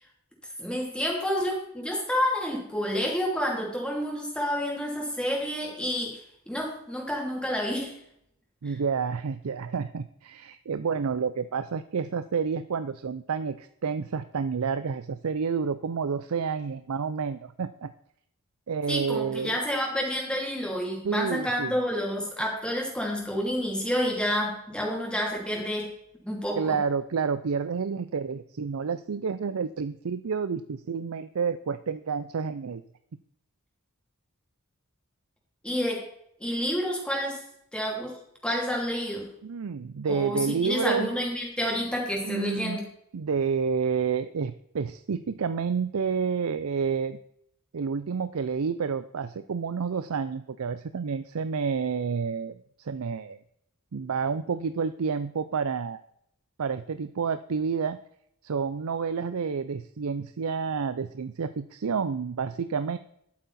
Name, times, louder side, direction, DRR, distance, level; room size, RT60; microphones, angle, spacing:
voice 1, 0.6-6.2 6.5-8.0 8.6-8.8 18.9-25.9 26.2-26.8 35.6-36.1 36.4-37.4 37.7-39.3 40.1-42.8, equal, 5° left, -1 dB, 2.9 m, -29 dB
voice 2, 8.6-17.9 18.7-19.5 21.0-21.7 26.6-32.8 39.4-41.1 42.2-42.8 43.1-47.2 47.7-53.4 53.9-56.0 56.6-58.0 58.4-63.0, right 6 dB, 85° right, 12 dB, 0.5 m, -29 dB
11.5 x 8.5 x 4.2 m, 0.74 s
head